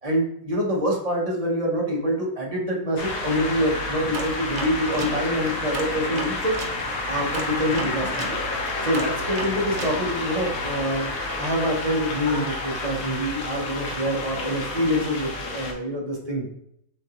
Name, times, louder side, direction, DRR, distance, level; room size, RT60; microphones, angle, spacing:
voice 1, 0.0-6.5 7.1-8.3 8.8-16.5, equal, 30° right, -3 dB, 0.7 m, -26 dB
sound 1, 3.0-15.7, left 2 dB, 60° left, 1.2 m, -30 dB
sound 2, 4.1-6.8 7.3-10.0, right 3 dB, 65° right, 0.4 m, -34 dB
6.5 x 2.6 x 2.9 m, 0.73 s
omnidirectional pair, 1.7 m